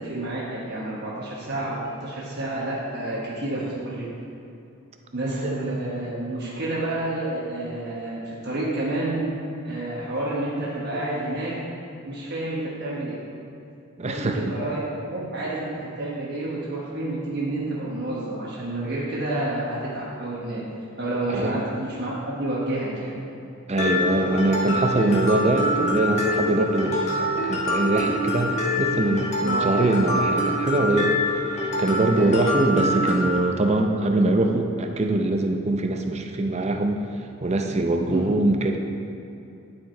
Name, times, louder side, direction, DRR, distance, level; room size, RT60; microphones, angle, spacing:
voice 1, 0.0-4.1 5.1-9.3 9.6-11.6 12.0-13.2 14.0-20.6 21.0-23.1 29.4-29.8 32.2-32.6 38.1-38.3, right 2 dB, 50° right, -5 dB, 1.2 m, -29 dB
voice 2, 14.0-14.4 21.3-21.6 23.7-31.1 31.8-37.0 37.4-38.8, right 2 dB, 30° right, 4 dB, 0.5 m, -23 dB
Mallet percussion, 23.8-33.4, left 1 dB, 30° left, 1.3 m, -25 dB
11.5 x 4.7 x 4.4 m, 2.8 s
head